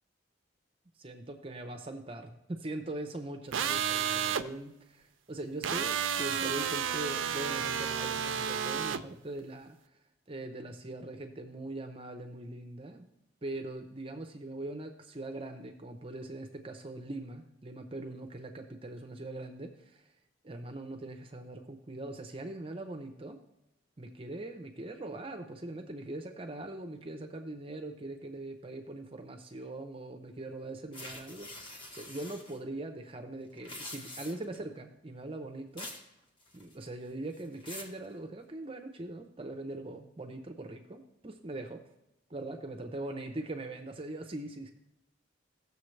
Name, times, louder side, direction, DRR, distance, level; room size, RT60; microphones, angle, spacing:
voice 1, 1.0-9.8 10.3-13.1 13.4-20.1 20.4-23.4 24.0-35.9 36.5-41.9 42.3-44.7, right 2 dB, 30° right, 6 dB, 0.6 m, -41 dB
sound 1, 3.5-4.4 5.6-9.0, right 8 dB, 75° right, 0.5 m, -31 dB
sound 2, 30.9-32.6 33.5-34.6 35.8-36.1 36.4-36.9 37.3-38.0, left 1 dB, 25° left, 1.2 m, -45 dB
16.0 x 6.9 x 3.2 m, 0.91 s
head